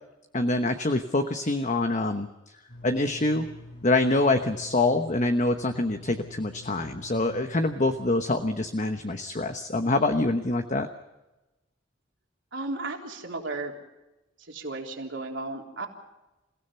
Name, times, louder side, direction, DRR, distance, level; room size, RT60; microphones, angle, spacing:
voice 1, 0.3-2.3 2.8-3.5 3.8-10.9, left 2 dB, 40° left, 7 dB, 1.1 m, -25 dB
sound 1, 2.7-8.0, left 1 dB, 70° left, 7.9 m, -45 dB
voice 2, 12.5-13.8 14.5-15.9, right 2 dB, 70° right, 1 dB, 3.7 m, -34 dB
28.5 x 16.5 x 5.7 m, 1.0 s
head